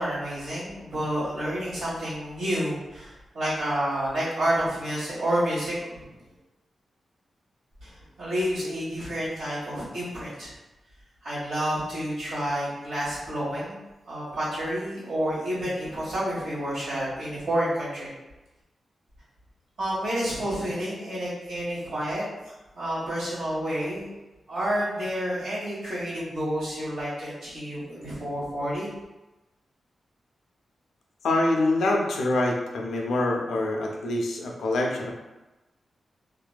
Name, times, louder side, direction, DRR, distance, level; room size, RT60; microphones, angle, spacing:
voice 1, 0.0-6.1 7.8-10.5 11.2-13.8 14.1-18.1 19.8-24.1 24.5-28.9, equal, 85° right, -10 dB, 1.3 m, -29 dB
voice 2, 31.2-35.1, left 2 dB, 90° left, 0 dB, 0.4 m, -25 dB
2.5 x 2.2 x 2.2 m, 1.0 s
cardioid pair, 65°, 0 cm